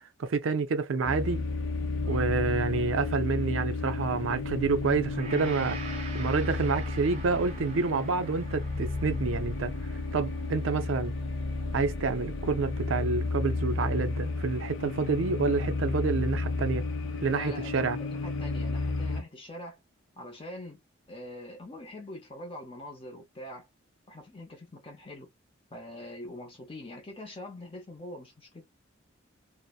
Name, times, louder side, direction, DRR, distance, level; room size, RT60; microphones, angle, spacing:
voice 1, 0.2-1.4 2.1-5.8 6.1-11.1 11.7-16.9 17.2-18.0, right 4 dB, 85° right, 0.4 m, -28 dB
sound 1, 1.0-19.2, left 3 dB, 80° left, 0.5 m, -32 dB
Gong, 5.1-13.4 13.9-14.1, right 4 dB, 30° right, 0.7 m, -47 dB
voice 2, 17.3-19.8 20.2-20.8 21.1-23.7 24.1-25.3 25.7-28.7, left 1 dB, 25° left, 0.6 m, -44 dB
2.6 x 2.0 x 2.2 m
head